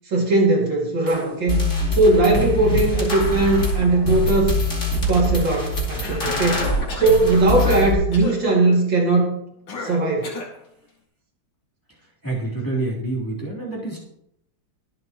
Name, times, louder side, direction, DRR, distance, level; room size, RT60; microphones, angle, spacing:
voice 1, 0.1-4.5 4.9-6.7 7.0-9.3 9.8-10.4, right 2 dB, 65° right, -1 dB, 3.0 m, -19 dB
sound 1, 1.1-1.2 1.5-7.9, left 1 dB, 35° left, 3.1 m, -23 dB
Cough, 6.0-7.2 7.6-7.9 8.1-8.4 9.7-10.6, left 3 dB, 65° left, 2.8 m, -32 dB
voice 2, 12.2-14.0, right 2 dB, 10° left, -6 dB, 3.3 m, -27 dB
23.0 x 7.9 x 3.0 m, 0.78 s
omnidirectional pair, 2.2 m